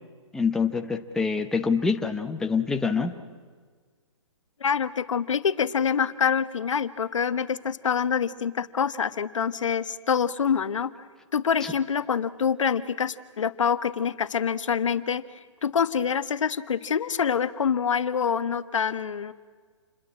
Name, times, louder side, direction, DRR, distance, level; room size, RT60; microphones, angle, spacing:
voice 1, 0.3-3.2, left 5 dB, 5° left, 5 dB, 0.8 m, -25 dB
voice 2, 4.6-10.9 11.3-15.2 15.6-19.3, left 7 dB, 75° left, 12 dB, 1.3 m, -26 dB
28.5 x 21.5 x 8.6 m, 1.5 s
hypercardioid pair, 155°, 16 cm